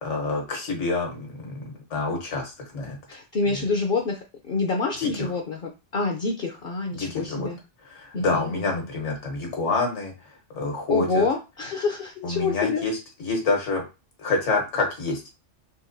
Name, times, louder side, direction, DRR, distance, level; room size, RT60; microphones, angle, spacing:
voice 1, 0.0-3.0 5.0-5.3 6.9-7.5 7.9-10.1 10.5-11.2 12.2-13.8 14.2-15.3, left 3 dB, 80° left, 1 dB, 1.5 m, -27 dB
voice 2, 3.1-7.6 8.1-8.9 10.9-12.8, left 4 dB, 60° left, 2 dB, 0.7 m, -27 dB
4.0 x 2.2 x 2.6 m, 0.28 s
omnidirectional pair, 1.2 m